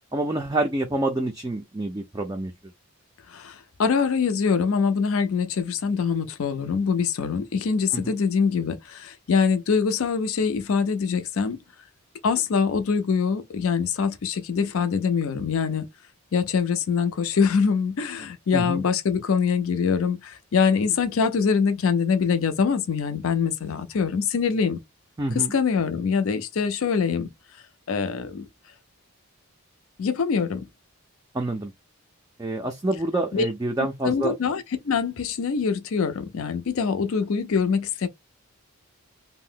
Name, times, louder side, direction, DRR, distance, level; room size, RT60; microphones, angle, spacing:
voice 1, 0.1-2.5 7.9-8.1 18.5-18.8 25.2-25.5 31.3-31.7 32.4-34.4, right 2 dB, 15° right, 0.3 m, -27 dB
voice 2, 3.3-11.6 12.2-15.8 16.3-24.8 25.3-27.3 27.9-28.4 30.0-30.7 33.3-33.5 34.0-38.1, left 6 dB, 65° left, 0.5 m, -24 dB
2.6 x 2.1 x 3.6 m
head